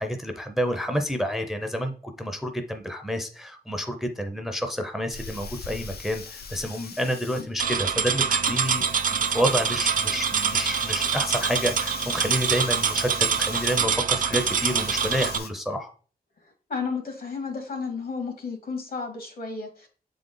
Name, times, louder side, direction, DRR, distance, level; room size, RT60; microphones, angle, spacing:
voice 1, 0.0-8.8 9.1-15.9, equal, ahead, 6 dB, 0.5 m, -29 dB
Hiss, 5.1-15.5, left 5 dB, 90° left, 0.7 m, -40 dB
sound 1, 7.6-15.4, right 7 dB, 60° right, 0.6 m, -25 dB
voice 2, 16.7-19.9, left 5 dB, 70° left, 4 dB, 1.8 m, -32 dB
7.6 x 3.8 x 3.8 m, 0.41 s
wide cardioid pair, 175°, 16 cm